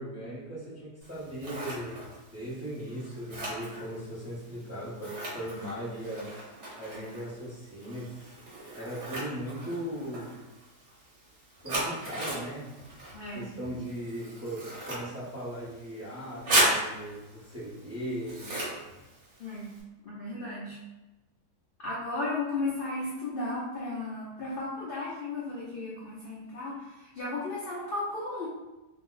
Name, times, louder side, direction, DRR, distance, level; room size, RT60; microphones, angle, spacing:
voice 1, 0.0-6.4 6.8-8.2 8.7-10.5 11.6-12.8 13.3-18.5, equal, 15° right, -10 dB, 0.5 m, -38 dB
Scissors, 1.0-19.8, right 1 dB, 55° right, 1.2 m, -36 dB
voice 2, 13.1-13.5 19.4-19.7 20.0-20.8 21.8-28.5, left 2 dB, 70° left, -6 dB, 0.5 m, -35 dB
2.8 x 2.0 x 3.8 m, 1.0 s
omnidirectional pair, 1.7 m